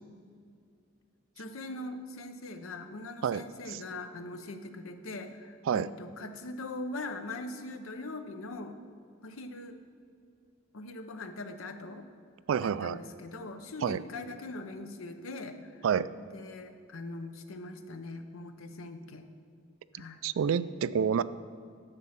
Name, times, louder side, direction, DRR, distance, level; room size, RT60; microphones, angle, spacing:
voice 1, 1.4-8.8 9.2-9.8 10.7-12.1 12.6-15.8 16.2-19.3 19.9-20.2, left 2 dB, 90° left, 8 dB, 0.8 m, -41 dB
voice 2, 3.2-3.8 5.7-5.9 12.5-13.0 13.8-14.0 15.8-16.1 19.9-21.2, right 7 dB, 75° right, 16 dB, 0.3 m, -29 dB
11.0 x 7.3 x 5.7 m, 2.3 s
head